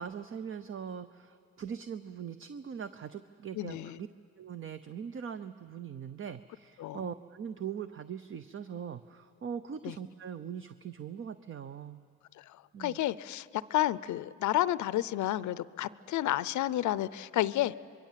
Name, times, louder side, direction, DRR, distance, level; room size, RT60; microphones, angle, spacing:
voice 1, 0.0-4.1 4.4-12.0 12.7-13.0, right 7 dB, 45° right, 11 dB, 0.7 m, -41 dB
voice 2, 3.5-4.0 6.8-7.0 9.8-10.0 12.4-17.8, left 14 dB, 75° left, 18 dB, 0.6 m, -31 dB
25.0 x 22.5 x 7.5 m, 2.5 s
cardioid pair, 90°, 30 cm